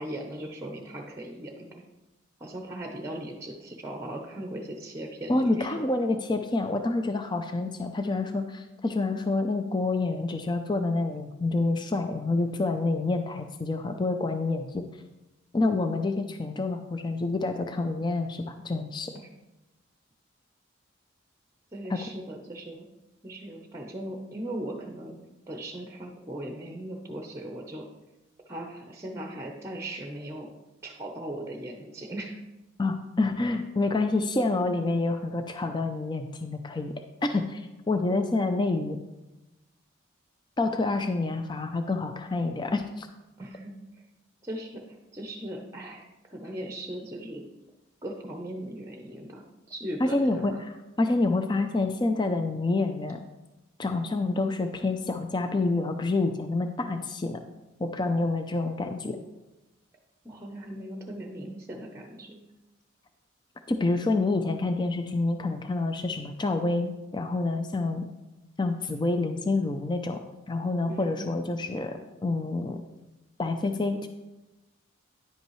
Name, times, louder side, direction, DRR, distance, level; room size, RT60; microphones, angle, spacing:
voice 1, 0.0-1.8 2.4-5.9 21.7-22.9 23.2-25.2 25.5-27.9 28.5-30.5 30.8-32.4 43.4-43.7 44.4-44.8 45.1-47.4 48.0-50.6 60.2-62.4 70.9-71.4, right 1 dB, 15° right, 3 dB, 0.7 m, -38 dB
voice 2, 5.3-14.9 15.5-19.1 21.9-22.0 32.8-36.9 37.2-39.0 40.6-43.1 50.0-53.2 53.8-57.4 57.8-59.2 63.7-68.0 68.6-70.2 70.5-72.8 73.4-74.1, left 2 dB, 20° left, 6 dB, 0.4 m, -28 dB
10.5 x 8.1 x 3.1 m, 1.0 s
head